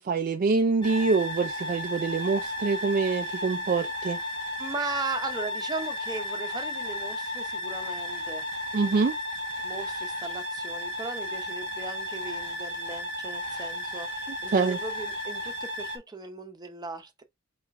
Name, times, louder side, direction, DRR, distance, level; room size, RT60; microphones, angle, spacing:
voice 1, 0.0-4.2 8.7-9.1 14.5-14.8, right 4 dB, 40° right, 0.4 m, -25 dB
sound 1, 0.8-16.0, left 1 dB, 25° left, 1.0 m, -34 dB
voice 2, 4.6-8.5 9.6-17.2, right 3 dB, 20° right, 0.8 m, -37 dB
4.9 x 2.4 x 4.0 m
head